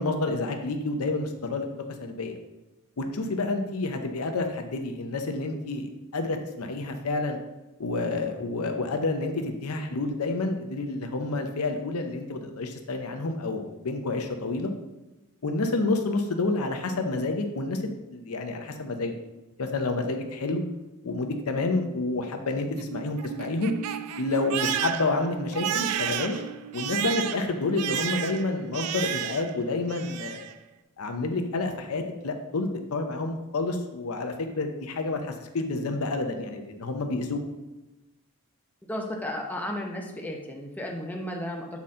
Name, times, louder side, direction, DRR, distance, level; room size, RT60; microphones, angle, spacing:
voice 1, 0.0-1.7 2.0-2.4 3.0-7.4 7.8-14.7 15.4-17.8 18.1-19.1 19.6-20.6 21.0-23.7 24.2-26.4 26.7-30.4 31.0-37.4, left 2 dB, 70° left, 5 dB, 0.7 m, -29 dB
Crying sobbing, 22.6-29.6 29.9-30.5, right 10 dB, 85° right, 0.4 m, -32 dB
voice 2, 38.9-41.8, left 1 dB, 5° left, 0 dB, 0.7 m, -34 dB
7.0 x 4.2 x 3.7 m, 1.0 s
head